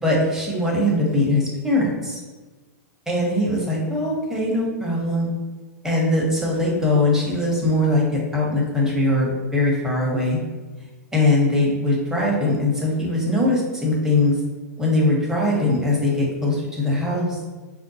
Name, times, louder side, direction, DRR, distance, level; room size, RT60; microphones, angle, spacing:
voice 1, 0.0-2.2 3.1-5.3 5.8-10.4 11.1-14.4 14.8-17.4, left 2 dB, 5° right, -4 dB, 1.0 m, -21 dB
5.1 x 2.1 x 2.8 m, 1.3 s
hypercardioid pair, 115°, 9 cm